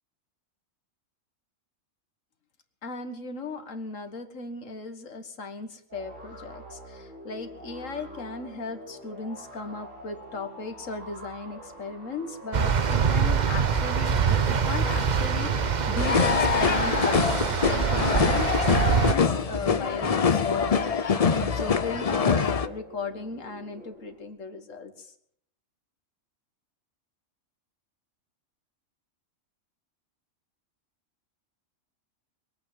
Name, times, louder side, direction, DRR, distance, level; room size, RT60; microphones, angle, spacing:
voice 1, 2.8-25.1, left 3 dB, 70° left, 7 dB, 1.9 m, -36 dB
sound 1, 5.9-24.3, right 1 dB, 70° right, 7.2 m, -46 dB
sound 2, 12.5-19.1, right 6 dB, 40° right, 0.8 m, -24 dB
sound 3, 16.0-22.7, left 5 dB, 35° left, 0.6 m, -24 dB
22.5 x 8.8 x 7.3 m, 0.70 s
omnidirectional pair, 1.4 m